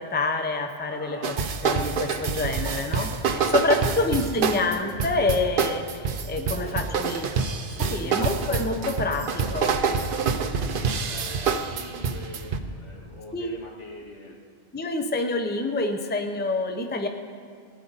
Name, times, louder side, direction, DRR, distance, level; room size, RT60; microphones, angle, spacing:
voice 1, 0.0-1.3 1.6-7.3 7.8-9.7 13.3-13.5 14.7-17.1, left 2 dB, 10° left, 5 dB, 0.7 m, -27 dB
voice 2, 0.9-1.5 3.3-4.0 6.4-7.1 7.9-8.5 9.4-14.4, left 1 dB, 80° left, -4 dB, 2.5 m, -43 dB
sound 1, 1.2-12.6, right 5 dB, 55° right, 0.8 m, -26 dB
18.5 x 10.5 x 4.1 m, 2.3 s
omnidirectional pair, 1.2 m